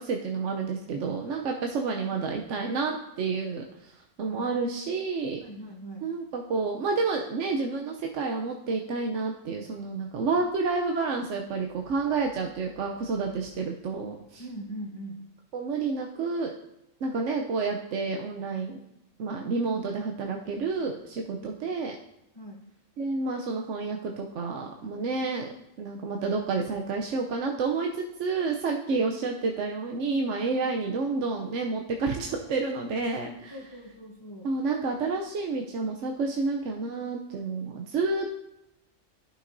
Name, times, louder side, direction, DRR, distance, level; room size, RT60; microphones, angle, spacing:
voice 1, 0.0-3.9 4.2-5.4 6.0-14.4 15.5-16.5 17.0-18.8 19.2-22.0 23.0-25.5 25.8-33.6 34.4-38.3, right 4 dB, 75° right, 2 dB, 1.0 m, -29 dB
voice 2, 5.4-6.1 14.4-15.3 22.3-22.6 33.5-34.5, right 1 dB, 25° left, -1 dB, 0.8 m, -41 dB
13.5 x 6.0 x 2.6 m, 0.84 s
omnidirectional pair, 1.3 m